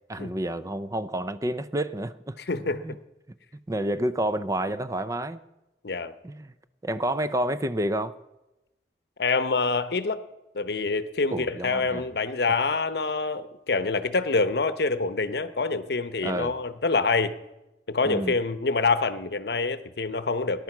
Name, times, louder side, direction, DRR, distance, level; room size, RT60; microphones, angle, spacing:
voice 1, 0.1-3.0 3.7-5.4 6.2-6.5 6.8-8.1 11.3-12.0 16.2-16.6 18.0-18.4, right 1 dB, 20° right, 13 dB, 0.5 m, -29 dB
voice 2, 2.4-2.8 5.8-6.1 9.2-10.2 10.5-17.3 17.9-20.6, left 4 dB, 65° left, 13 dB, 0.8 m, -26 dB
18.5 x 10.5 x 6.0 m, 0.99 s
head